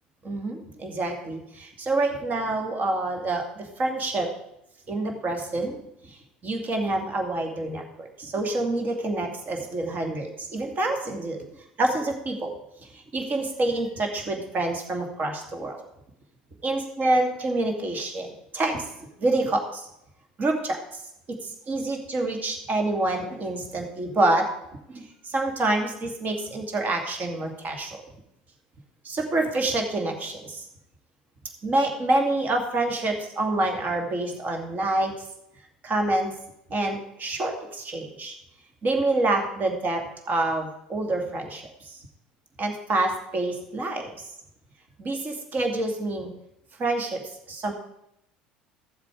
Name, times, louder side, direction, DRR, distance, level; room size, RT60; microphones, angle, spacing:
voice 1, 0.2-4.3 4.9-5.8 6.0-6.2 6.4-11.5 11.8-12.5 12.8-15.8 16.6-18.9 19.2-19.9 20.4-20.8 21.3-24.5 24.9-28.0 29.0-30.7 31.6-35.1 35.8-36.3 36.7-38.4 38.8-42.0 42.6-44.3 45.0-46.3 46.8-47.7, right 2 dB, 40° right, 3 dB, 2.3 m, -27 dB
14.5 x 7.4 x 4.9 m, 0.80 s
hypercardioid pair, 70°, 5 cm